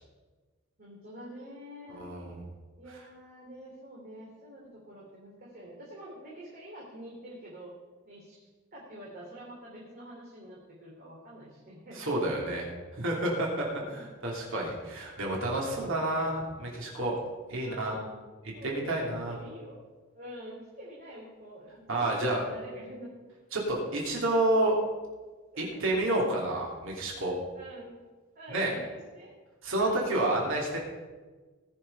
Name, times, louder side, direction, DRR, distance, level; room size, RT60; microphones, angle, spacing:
voice 1, 0.8-2.0 2.8-7.7 8.0-8.4 8.7-12.0 13.6-14.0 17.6-18.2 18.5-19.8 20.1-23.1 25.5-25.8 27.5-28.0 28.3-28.9 29.1-29.3 29.8-30.0, right 1 dB, 45° right, -5 dB, 3.0 m, -46 dB
voice 2, 1.9-2.4 11.9-12.7 12.9-17.2 17.5-17.9 18.6-19.3 21.9-22.4 23.5-24.7 25.6-27.3 28.5-28.7 29.6-30.8, right 1 dB, 65° right, -2 dB, 3.0 m, -29 dB
19.0 x 6.5 x 5.6 m, 1.3 s
head